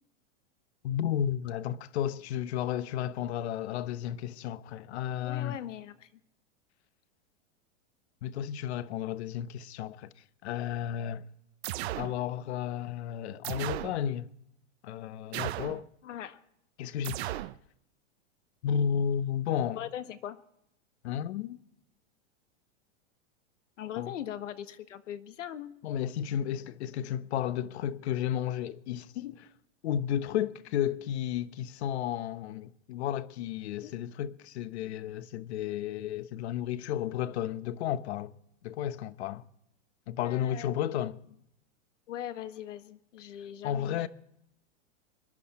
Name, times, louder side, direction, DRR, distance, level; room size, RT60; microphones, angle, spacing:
voice 1, 0.8-5.6 8.2-10.1 10.4-11.2 12.0-14.3 14.8-15.9 16.8-17.4 18.6-19.8 21.0-21.6 24.0-24.1 25.8-29.5 29.8-38.3 38.6-39.4 40.1-41.2 43.6-44.1, left 10 dB, 65° left, 1.1 m, -33 dB
voice 2, 5.2-6.1 16.0-16.4 19.8-20.4 23.8-25.7 33.8-33.9 40.2-40.8 42.1-44.1, left 11 dB, 90° left, 1.6 m, -40 dB
sound 1, 11.6-12.2 13.4-14.0 15.3-15.8 17.0-17.6, right 15 dB, 60° right, 0.8 m, -35 dB
25.5 x 11.5 x 4.3 m
supercardioid pair, 150°, 36 cm